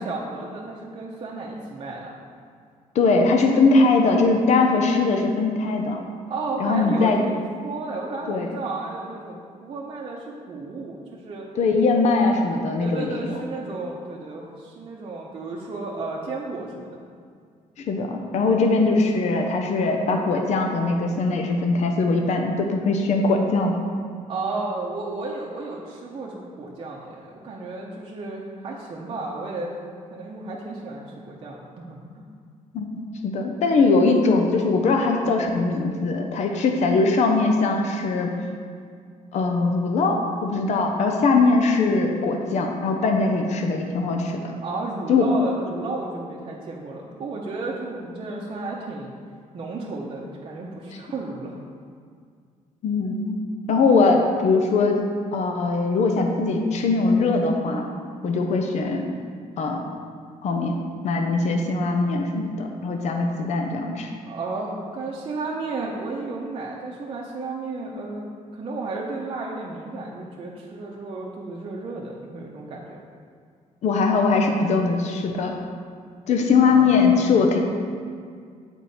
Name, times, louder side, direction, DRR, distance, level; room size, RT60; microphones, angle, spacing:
voice 1, 0.0-2.2 6.3-11.5 12.8-17.1 24.3-29.7 30.1-32.3 44.6-49.1 49.5-51.6 64.3-73.0 76.6-77.2, right 3 dB, 40° right, -3 dB, 0.7 m, -33 dB
voice 2, 2.9-6.0 6.6-7.2 8.3-8.5 11.6-13.4 17.8-23.8 32.7-32.9 33.2-38.3 39.3-44.5 45.1-45.3 52.8-53.4 53.7-55.0 55.3-57.9 58.2-59.0 59.6-59.8 60.4-60.7 61.0-64.1 73.8-75.6 76.3-77.6, left 3 dB, 60° left, 3 dB, 0.7 m, -21 dB
8.1 x 4.4 x 4.1 m, 2.1 s
cardioid pair, 145°, 13 cm